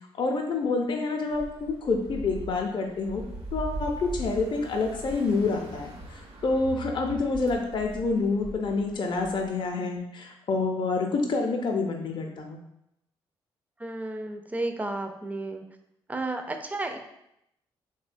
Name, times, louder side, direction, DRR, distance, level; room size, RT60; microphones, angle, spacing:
voice 1, 0.2-3.2 3.5-12.6, left 3 dB, 45° left, 2 dB, 0.4 m, -28 dB
sound 1, 1.3-9.7, right 1 dB, 70° right, 0.6 m, -40 dB
voice 2, 13.8-15.6 16.1-17.0, right 2 dB, 15° right, 6 dB, 0.3 m, -32 dB
3.0 x 2.1 x 2.5 m, 0.80 s
supercardioid pair, 60°, 11 cm